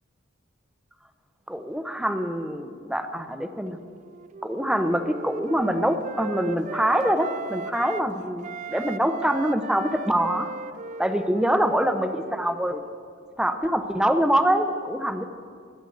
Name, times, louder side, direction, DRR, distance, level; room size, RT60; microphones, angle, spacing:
voice 1, 1.5-3.8 4.4-10.5 11.0-12.8 13.4-15.3, equal, 5° right, 8 dB, 0.7 m, -24 dB
Wind instrument woodwind instrument, 3.7-8.1 8.4-12.9, right 6 dB, 40° right, 0.3 m, -38 dB
15.0 x 10.0 x 7.8 m, 2.2 s
head